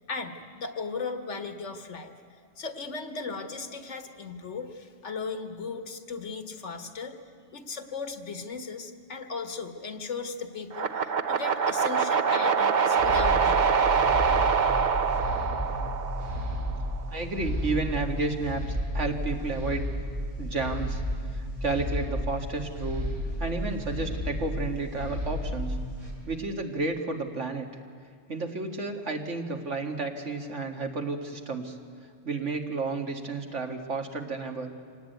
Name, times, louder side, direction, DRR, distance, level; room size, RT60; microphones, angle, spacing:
voice 1, 0.0-7.2 7.5-14.0, left 4 dB, 75° left, 7 dB, 1.7 m, -37 dB
sound 1, 10.7-16.9, right 6 dB, 45° right, 0.8 m, -25 dB
sound 2, 13.0-26.1, equal, 90° right, 6.5 m, -33 dB
voice 2, 17.1-19.9 20.4-21.0 21.3-23.1 23.4-25.8 26.3-27.7 28.3-31.8 32.2-34.7, right 3 dB, 75° right, 3 dB, 2.2 m, -31 dB
25.0 x 18.5 x 9.2 m, 2.1 s
omnidirectional pair, 1.2 m